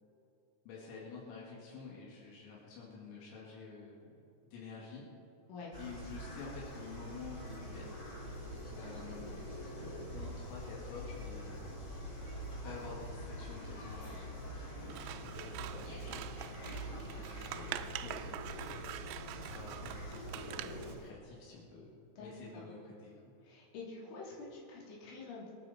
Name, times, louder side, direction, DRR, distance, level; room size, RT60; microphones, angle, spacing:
voice 1, 0.7-4.1 4.5-5.0 5.8-8.0 8.7-9.3 10.1-11.6 12.6-14.3 14.8-16.6 16.9-18.7 19.3-21.9 22.2-23.1, left 4 dB, 85° left, -5 dB, 5.0 m, -49 dB
sound 1, 5.7-20.9, equal, 25° left, 2.2 m, -45 dB
Scissors, 14.9-21.0, right 14 dB, 85° right, 2.8 m, -45 dB
voice 2, 16.6-17.0 22.2-22.7 23.4-25.5, left 3 dB, 70° left, -5 dB, 5.5 m, -48 dB
25.5 x 9.2 x 4.3 m, 2.7 s
omnidirectional pair, 5.9 m